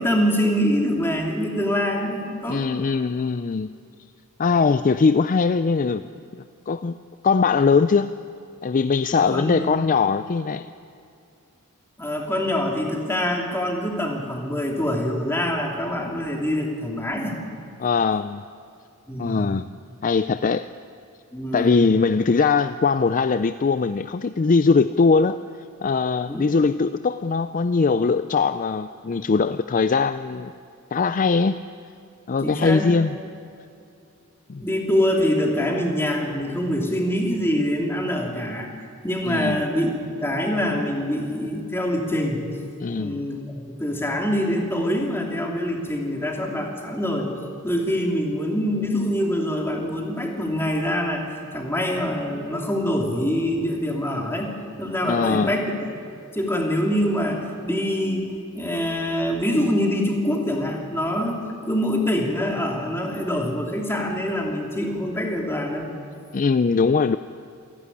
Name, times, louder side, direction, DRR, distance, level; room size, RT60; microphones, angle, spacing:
voice 1, 0.0-2.6 9.1-9.8 12.0-17.4 19.1-19.5 21.3-21.8 26.3-26.4 32.4-32.9 34.6-38.7 39.0-39.9 40.2-42.4 43.0-47.3 47.6-51.3 51.5-55.9 56.3-65.9, equal, 10° left, 0 dB, 2.9 m, -25 dB
voice 2, 2.5-3.7 4.4-6.0 6.3-7.0 7.2-8.1 8.6-10.7 17.8-18.4 19.2-19.6 20.0-20.7 21.5-25.4 25.8-30.5 30.9-31.6 32.3-33.2 34.5-34.6 39.2-39.6 42.8-43.2 55.0-55.5 66.3-67.2, left 4 dB, 40° left, 12 dB, 0.4 m, -21 dB
27.5 x 11.5 x 9.9 m, 2.5 s
head